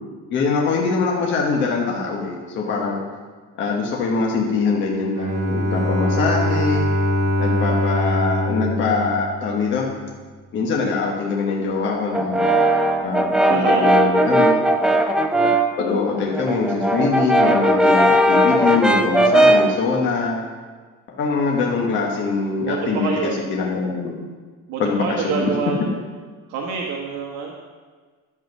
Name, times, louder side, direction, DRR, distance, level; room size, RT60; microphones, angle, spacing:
voice 1, 0.3-3.0 3.5-6.8 7.4-9.9 10.5-12.6 13.0-14.5 15.8-20.4 21.1-24.2 24.8-25.5, left 4 dB, 35° left, -1 dB, 1.3 m, -23 dB
Bowed string instrument, 5.1-9.9, left 1 dB, 45° right, 1.9 m, -22 dB
Brass instrument, 12.1-15.8 16.2-19.8, right 1 dB, ahead, 0.3 m, -17 dB
voice 2, 13.4-14.5 22.6-23.4 24.7-26.0 26.5-27.5, right 5 dB, 70° right, -1 dB, 1.4 m, -27 dB
11.0 x 7.6 x 5.4 m, 1.5 s
cardioid pair, 175°, 32 cm